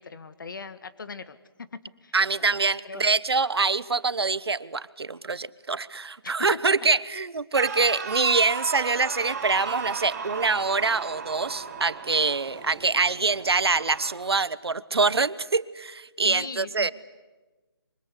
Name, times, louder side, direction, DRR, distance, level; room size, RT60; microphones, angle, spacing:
voice 1, 0.0-1.4 2.0-2.1 2.8-3.1 16.2-16.9, left 4 dB, 55° left, 13 dB, 1.7 m, -39 dB
voice 2, 2.1-16.9, right 4 dB, 80° right, 17 dB, 1.1 m, -25 dB
sound 1, 7.5-12.7 13.5-14.1, right 6 dB, 40° right, 4.5 m, -35 dB
sound 2, 8.8-14.0, right 3 dB, 10° right, 4.3 m, -48 dB
25.5 x 24.0 x 8.3 m, 1.2 s
figure-of-eight pair, 165°, 13 cm